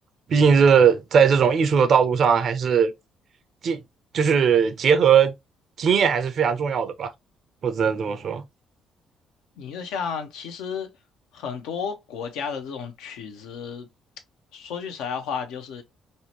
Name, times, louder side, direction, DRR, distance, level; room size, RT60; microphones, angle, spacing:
voice 1, 0.3-2.9 3.6-3.8 4.1-5.3 5.8-7.1 7.6-8.4, right 6 dB, 55° right, 0.4 m, -19 dB
voice 2, 9.6-10.9 11.3-13.9 14.5-15.8, left 6 dB, 70° left, 0.5 m, -32 dB
2.6 x 2.1 x 2.9 m
hypercardioid pair, 50°, 0 cm